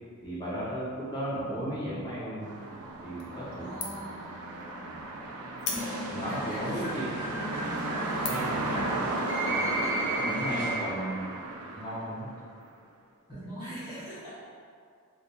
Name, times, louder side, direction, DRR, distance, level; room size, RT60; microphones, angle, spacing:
voice 1, 0.2-2.5 3.0-3.7 6.1-7.4 8.3-8.6 10.2-11.2 11.7-12.3, equal, 20° left, -9 dB, 0.9 m, -35 dB
sound 1, 2.4-12.6, right 2 dB, 80° right, 0.4 m, -35 dB
sound 2, 3.2-3.6 3.8-4.2 4.6-4.7 5.6-6.3 6.9-7.0 7.6-7.8 8.2-8.6, left 4 dB, 50° left, 0.4 m, -36 dB
voice 2, 3.6-4.4 6.0-7.3 7.6-9.0 13.3-14.4, right 1 dB, 20° right, -13 dB, 1.3 m, -43 dB
sound 3, 5.7-11.1, right 1 dB, 60° right, 0.9 m, -35 dB
3.3 x 2.3 x 2.8 m, 2.1 s
head